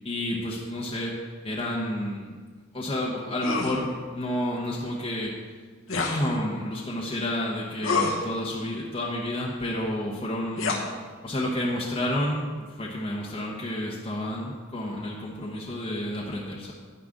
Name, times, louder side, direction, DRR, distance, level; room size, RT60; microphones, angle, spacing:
voice 1, 0.0-1.2 1.4-2.3 2.7-5.3 6.0-10.8 11.2-16.7, left 1 dB, 30° left, -3 dB, 1.0 m, -30 dB
sound 1, 3.4-3.8 5.9-6.3 7.8-8.2 10.6-10.8, left 4 dB, 70° left, 1.2 m, -26 dB
10.5 x 9.7 x 3.8 m, 1.5 s
head